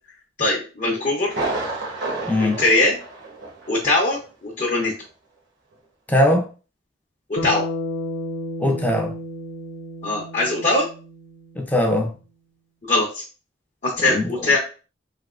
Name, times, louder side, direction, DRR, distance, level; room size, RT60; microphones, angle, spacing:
voice 1, 0.4-1.3 2.4-2.9 3.7-4.9 7.3-7.7 10.0-10.9 12.8-13.2 13.8-14.6, left 2 dB, 40° left, 0.8 m, -21 dB
Thunder, 1.3-3.8 4.1-4.2 4.8-4.9, right 2 dB, 65° right, 1.0 m, -30 dB
voice 2, 2.3-2.6 6.1-6.5 8.6-9.2 11.5-12.1 14.0-14.3, left 1 dB, 10° left, 0.5 m, -20 dB
Bass guitar, 7.4-11.7, left 1 dB, 75° left, 0.5 m, -32 dB
3.4 x 2.8 x 2.4 m
head